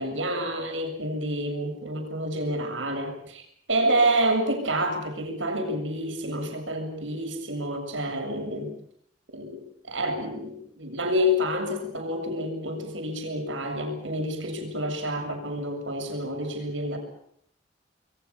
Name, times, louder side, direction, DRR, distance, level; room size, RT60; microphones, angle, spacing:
voice 1, 0.0-8.7 9.3-9.6 9.9-17.0, equal, 90° right, 4 dB, 7.3 m, -28 dB
28.0 x 22.5 x 7.2 m, 0.69 s
head